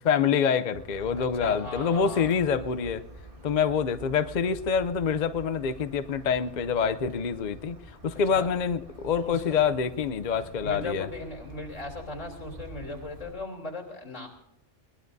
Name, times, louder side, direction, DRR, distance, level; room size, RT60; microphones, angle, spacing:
voice 1, 0.0-3.0 3.4-11.1, left 6 dB, 50° left, 12 dB, 0.6 m, -26 dB
sound 1, 0.7-13.3, right 1 dB, 45° right, 2.1 m, -47 dB
voice 2, 1.2-2.3 8.3-8.5 9.2-9.6 10.6-14.3, left 2 dB, 75° left, 1 dB, 3.5 m, -38 dB
21.5 x 19.5 x 2.7 m, 0.84 s
omnidirectional pair, 1.3 m